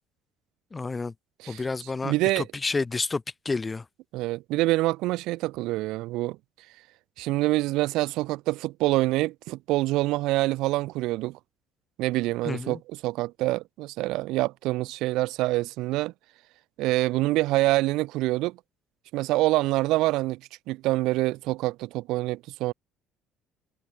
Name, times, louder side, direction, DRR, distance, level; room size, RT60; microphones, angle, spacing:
voice 1, 0.7-1.1 1.5-3.8 12.4-12.8, left 3 dB, 15° left, 1.1 m, -30 dB
voice 2, 2.0-2.5 4.1-6.4 7.2-11.4 12.0-16.1 16.8-18.6 19.1-20.4 20.7-22.7, right 19 dB, 75° right, 0.8 m, -26 dB
cardioid pair, 140°, 0 cm